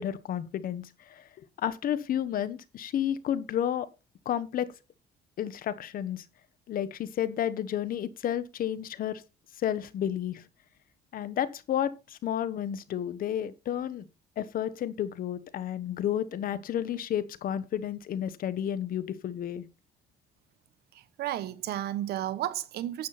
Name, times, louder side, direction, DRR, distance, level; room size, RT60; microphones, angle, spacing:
voice 1, 0.0-3.9 4.2-4.7 5.4-6.2 6.7-9.2 9.6-10.5 11.1-14.1 14.4-19.6, left 10 dB, 55° left, 1.2 m, -31 dB
voice 2, 20.9-23.1, right 13 dB, 70° right, 1.1 m, -33 dB
10.5 x 8.5 x 4.2 m
cardioid pair, 110°, 17 cm